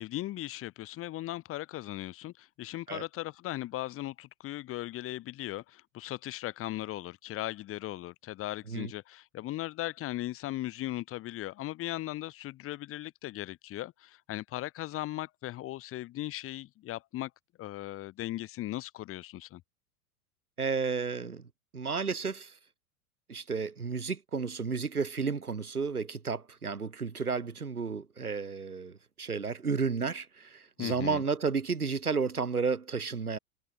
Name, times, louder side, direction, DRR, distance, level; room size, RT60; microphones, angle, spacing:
voice 1, 0.0-17.3 17.6-19.6 30.8-31.2, left 15 dB, 30° left, 1.9 m, -38 dB
voice 2, 20.6-21.4 21.7-22.5 23.3-33.4, right 5 dB, 85° right, 1.3 m, -32 dB
figure-of-eight pair, 90°, 44 cm